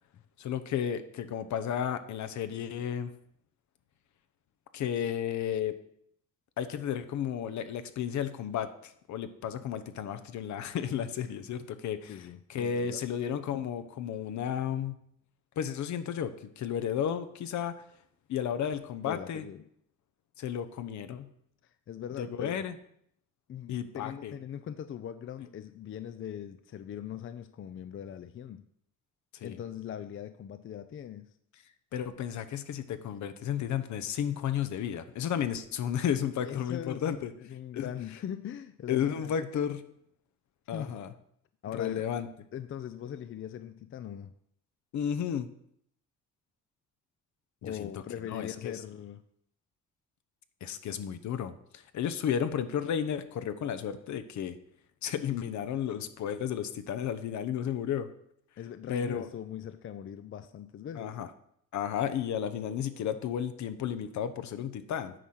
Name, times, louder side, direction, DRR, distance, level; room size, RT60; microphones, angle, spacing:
voice 1, 0.4-3.1 4.7-5.8 6.6-15.0 15.6-17.7 18.3-19.4 20.4-21.3 22.2-22.7 23.7-24.3 29.3-29.6 31.9-37.3 37.7-37.9 38.9-39.8 40.7-41.1 41.7-42.3 44.9-45.5 47.6-47.9 48.2-48.7 50.6-54.6 55.0-58.1 58.9-59.3 61.0-61.3 61.7-65.1, left 9 dB, 70° left, 11 dB, 0.8 m, -33 dB
voice 2, 12.1-13.0 19.0-19.6 21.9-22.6 23.5-28.7 29.4-31.3 36.4-39.3 40.7-41.0 41.6-42.0 42.5-44.3 47.6-49.2 58.6-61.2, left 9 dB, 45° left, 11 dB, 0.5 m, -41 dB
9.1 x 4.3 x 6.4 m, 0.69 s
cardioid pair, 90°, 30 cm